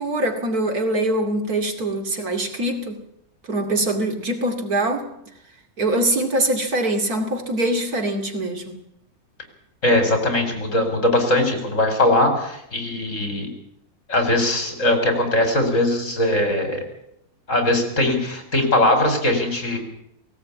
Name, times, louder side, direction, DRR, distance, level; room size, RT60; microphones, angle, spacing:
voice 1, 0.0-3.0 3.5-5.1 5.8-8.8, right 1 dB, 70° right, 4 dB, 3.0 m, -23 dB
voice 2, 9.8-13.5 14.1-16.8 17.5-19.8, left 1 dB, 50° left, 5 dB, 5.0 m, -20 dB
18.0 x 17.5 x 8.6 m, 0.77 s
omnidirectional pair, 1.6 m